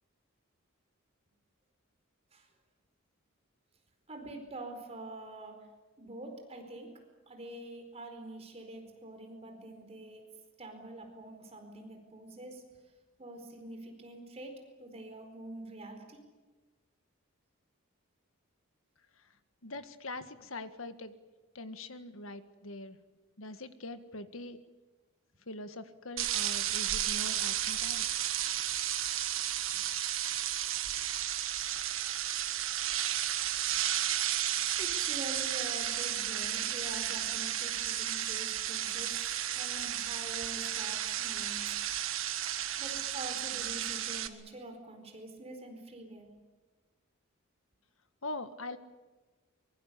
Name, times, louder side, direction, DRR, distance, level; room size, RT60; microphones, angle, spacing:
voice 1, 4.1-5.7 6.0-6.9 7.3-10.2 10.6-12.6 13.2-16.2 33.5-33.8 34.8-41.6 42.8-46.3, right 2 dB, 30° right, 4 dB, 4.5 m, -46 dB
voice 2, 19.6-21.2 21.6-23.0 23.4-24.6 25.5-28.0 48.2-48.8, left 2 dB, 75° left, 10 dB, 1.7 m, -43 dB
sound 1, 26.2-44.3, right 11 dB, 70° right, 1.6 m, -33 dB
24.5 x 23.0 x 8.4 m, 1.2 s
head